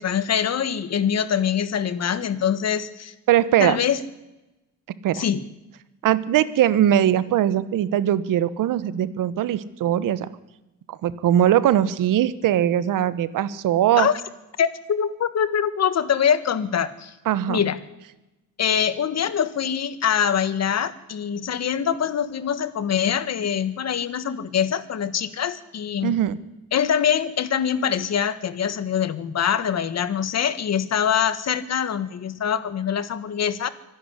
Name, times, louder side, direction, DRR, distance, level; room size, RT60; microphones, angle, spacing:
voice 1, 0.0-3.1 3.6-4.0 5.1-5.4 14.0-14.1 14.6-17.1 17.5-17.8 18.6-26.2 26.7-33.7, left 8 dB, 50° left, 14 dB, 1.6 m, -24 dB
voice 2, 3.3-3.8 5.0-5.2 6.0-10.3 10.9-14.1 17.2-17.6 26.0-26.4, right 11 dB, 75° right, 16 dB, 1.3 m, -20 dB
24.5 x 11.0 x 9.9 m, 0.98 s
cardioid pair, 100°, 32 cm